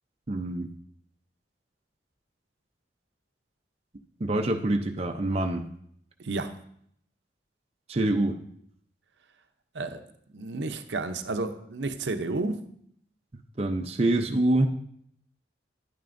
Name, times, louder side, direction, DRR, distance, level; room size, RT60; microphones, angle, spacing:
voice 1, 0.3-0.7 4.2-5.7 7.9-8.4 13.6-14.7, right 1 dB, 35° right, 4 dB, 0.5 m, -25 dB
voice 2, 6.2-6.5 9.7-10.0 10.3-12.6, right 3 dB, 75° right, 8 dB, 0.6 m, -31 dB
10.0 x 9.1 x 2.6 m, 0.67 s
head